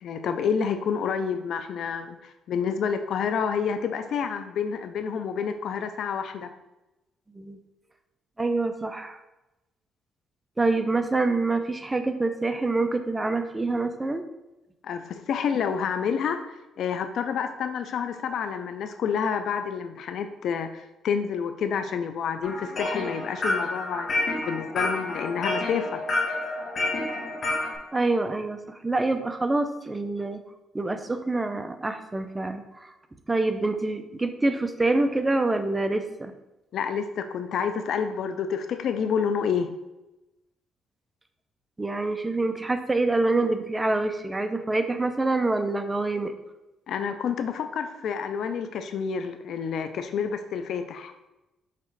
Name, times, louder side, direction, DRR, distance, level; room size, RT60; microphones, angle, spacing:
voice 1, 0.0-6.5 14.8-16.4 16.8-24.1 24.4-26.0 36.7-39.7 46.9-51.1, left 7 dB, 70° left, 9 dB, 0.5 m, -29 dB
voice 2, 8.4-9.2 10.6-14.2 27.9-30.4 30.7-32.9 33.3-36.3 41.8-46.3, right 2 dB, 15° right, 8 dB, 0.6 m, -26 dB
sound 1, 22.4-27.8, left 2 dB, 50° left, 1.6 m, -29 dB
5.9 x 3.7 x 4.7 m, 0.98 s
cardioid pair, 90°, 0 cm